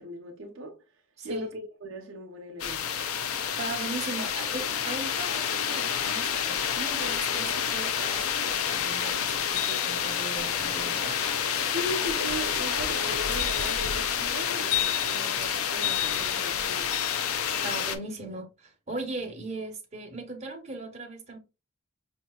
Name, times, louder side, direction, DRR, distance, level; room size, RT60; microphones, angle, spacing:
voice 1, 0.0-2.9 11.7-17.0, equal, 60° right, 0.7 m, -38 dB
sound 1, 2.6-18.0, left 8 dB, 80° left, 0.5 m, -28 dB
voice 2, 3.6-11.2 17.6-21.4, right 2 dB, 30° right, 1.0 m, -38 dB
5.2 x 2.7 x 2.2 m
head